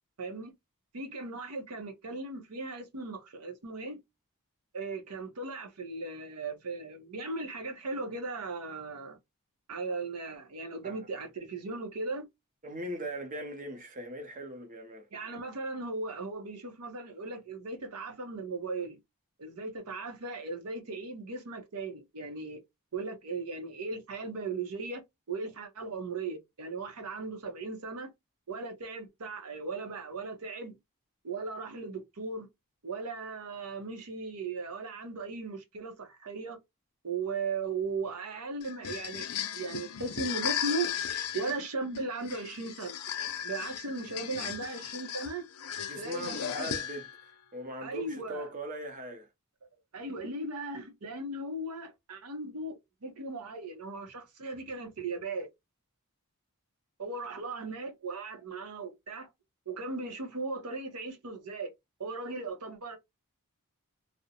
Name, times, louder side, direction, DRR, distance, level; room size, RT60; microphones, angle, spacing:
voice 1, 0.2-0.5 0.9-4.0 4.7-9.2 9.7-12.3 15.1-19.0 19.4-22.6 22.9-25.0 25.3-28.1 28.5-30.7 31.2-32.5 32.8-36.6 37.0-40.9 41.3-43.0 43.4-45.4 46.0-46.7 47.8-48.5 49.9-55.5 57.0-59.3 59.7-61.7 62.0-63.0, right 3 dB, 90° right, 0.7 m, -37 dB
voice 2, 12.6-15.1 45.9-49.3, equal, 35° right, 0.6 m, -40 dB
sound 1, 38.6-47.2, left 9 dB, 75° left, 0.4 m, -36 dB
2.5 x 2.1 x 2.7 m
head